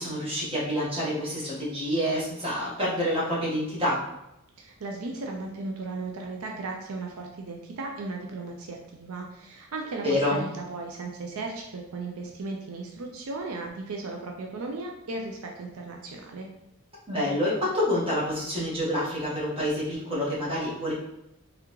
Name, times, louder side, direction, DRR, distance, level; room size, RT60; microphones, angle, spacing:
voice 1, 0.0-4.0 10.0-10.4 17.1-20.9, left 1 dB, 25° right, -7 dB, 1.4 m, -27 dB
voice 2, 4.6-16.5, right 3 dB, 75° right, 1 dB, 0.5 m, -36 dB
3.6 x 3.4 x 3.0 m, 0.85 s
head